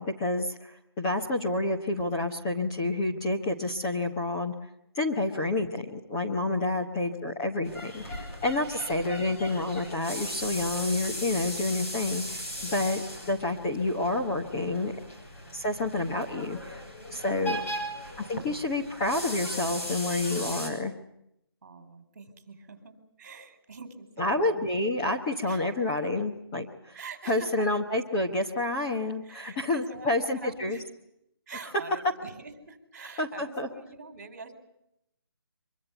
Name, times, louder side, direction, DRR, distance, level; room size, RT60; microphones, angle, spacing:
voice 1, 0.0-4.5 4.9-8.0 8.4-14.9 15.5-16.8 17.1-17.6 18.2-20.9 24.2-27.0 27.3-30.8 31.9-32.0 33.2-33.7, left 2 dB, 10° left, -1 dB, 1.0 m, -29 dB
voice 2, 6.6-6.9 8.8-9.1 15.4-15.7 21.6-24.6 25.4-25.9 26.9-27.7 29.2-30.8 31.5-34.5, right 4 dB, 35° right, 9 dB, 4.3 m, -46 dB
sound 1, 7.6-20.7, equal, 35° left, 7.9 m, -38 dB
24.5 x 23.5 x 8.0 m, 0.80 s
hypercardioid pair, 175°, 13 cm